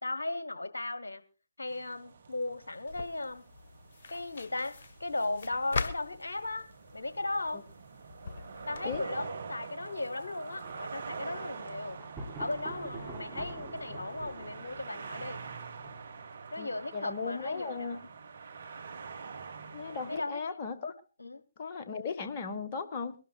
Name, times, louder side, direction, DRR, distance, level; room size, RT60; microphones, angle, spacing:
voice 1, 0.0-1.2 1.6-3.4 4.1-7.7 8.7-12.0 12.4-15.4 16.5-18.0 20.1-20.6 21.2-21.4, left 2 dB, 80° left, 13 dB, 1.2 m, -36 dB
sound 1, 1.7-20.2, right 5 dB, 60° right, 1.5 m, -46 dB
sound 2, 2.9-9.0, left 4 dB, 55° left, 1.2 m, -41 dB
Thunder, 10.5-16.4, right 2 dB, 5° right, 4.1 m, -47 dB
voice 2, 16.6-18.0 19.7-20.9 21.6-23.1, left 5 dB, 40° left, 7 dB, 1.5 m, -37 dB
23.0 x 12.5 x 2.4 m, 0.33 s
figure-of-eight pair, 140°, 0 cm